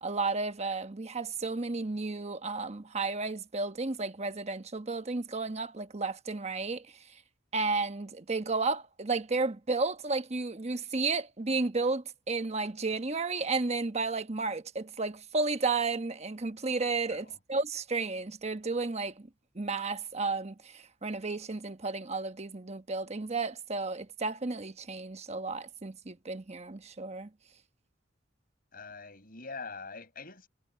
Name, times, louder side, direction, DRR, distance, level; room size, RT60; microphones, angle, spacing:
voice 1, 0.0-6.9 7.5-19.3 19.5-27.3, right 3 dB, 35° right, 1.0 m, -32 dB
voice 2, 28.7-30.5, left 4 dB, 45° left, 8.0 m, -44 dB
head